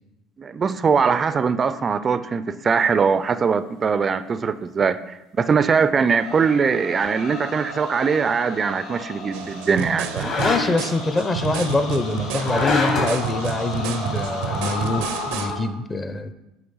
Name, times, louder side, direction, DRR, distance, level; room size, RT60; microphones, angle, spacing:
voice 1, 0.4-10.4, right 5 dB, 35° right, 13 dB, 0.3 m, -21 dB
sound 1, 6.0-15.6, left 2 dB, 65° left, 1.7 m, -34 dB
sound 2, 7.0-7.2 10.1-10.9 12.4-13.3, left 3 dB, 50° left, 1.7 m, -24 dB
sound 3, 9.3-15.5, right 8 dB, 85° right, 0.6 m, -31 dB
voice 2, 10.4-16.3, left 2 dB, 25° left, 10 dB, 0.6 m, -25 dB
7.9 x 3.0 x 5.6 m, 0.96 s
supercardioid pair, 90°, 0 cm